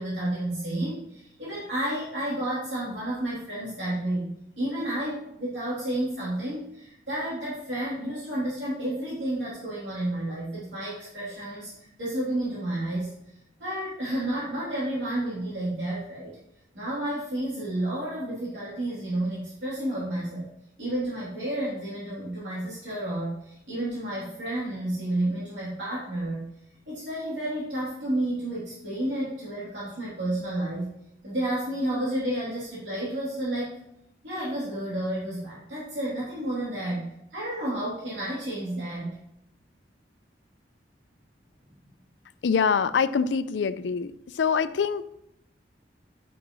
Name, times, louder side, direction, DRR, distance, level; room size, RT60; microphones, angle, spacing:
voice 1, 0.0-4.3 4.6-13.1 13.6-16.3 16.7-20.5 20.8-26.4 26.9-30.9 31.2-33.8 34.2-37.0 37.3-39.1, right 1 dB, 85° right, -9 dB, 3.2 m, -31 dB
voice 2, 42.4-45.1, left 6 dB, 85° left, 14 dB, 0.4 m, -25 dB
11.0 x 6.0 x 3.1 m, 0.80 s
head